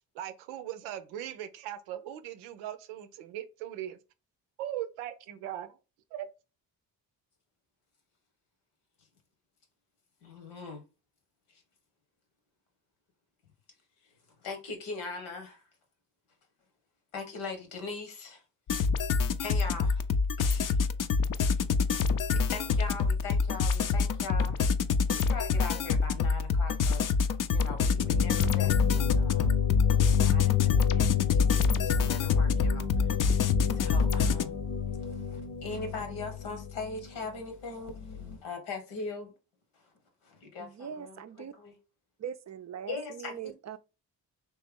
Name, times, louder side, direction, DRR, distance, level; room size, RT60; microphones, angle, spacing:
voice 1, 0.1-4.0 4.6-5.8 6.1-6.3, right 11 dB, 90° right, 0.6 m, -39 dB
voice 2, 10.2-10.8 14.4-15.6 17.1-18.4 19.4-20.0 20.4-20.8 21.5-21.6 22.3-24.6 25.1-29.5 30.0-33.0 33.7-34.6 34.9-39.3 40.2-41.7 42.9-43.5, left 3 dB, 80° left, 1.2 m, -41 dB
sound 1, 18.7-34.5, left 5 dB, 45° left, 0.5 m, -27 dB
sound 2, 28.0-37.4 37.9-38.4, left 9 dB, 65° left, 0.9 m, -29 dB
voice 3, 40.6-41.5 42.2-43.8, right 8 dB, 35° right, 0.5 m, -41 dB
3.2 x 3.0 x 3.6 m
hypercardioid pair, 45°, 47 cm